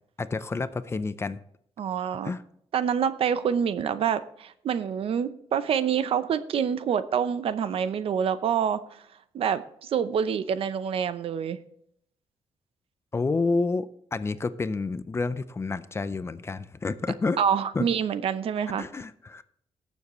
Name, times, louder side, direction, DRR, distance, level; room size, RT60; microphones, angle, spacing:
voice 1, 0.2-1.4 2.2-2.4 13.1-17.4 17.7-17.9 18.8-19.4, left 3 dB, 25° left, 14 dB, 0.5 m, -29 dB
voice 2, 1.8-2.3 2.7-9.0 9.3-11.6 17.4-18.8, right 8 dB, 65° right, 13 dB, 0.7 m, -27 dB
18.5 x 7.2 x 3.1 m, 0.70 s
cardioid pair, 120°, 10 cm